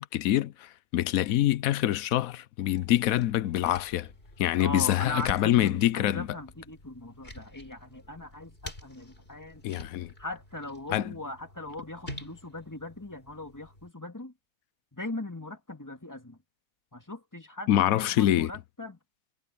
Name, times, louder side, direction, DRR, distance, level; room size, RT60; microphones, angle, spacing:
voice 1, 0.0-4.1 4.4-6.3 9.6-10.1 10.9-11.1 17.7-18.5, left 13 dB, 65° left, 1.0 m, -25 dB
sound 1, 2.7-13.9, left 1 dB, 35° left, 5.6 m, -48 dB
voice 2, 4.6-9.6 10.2-14.3 14.9-16.4 16.9-19.0, left 1 dB, 10° left, 2.1 m, -40 dB
omnidirectional pair, 1.7 m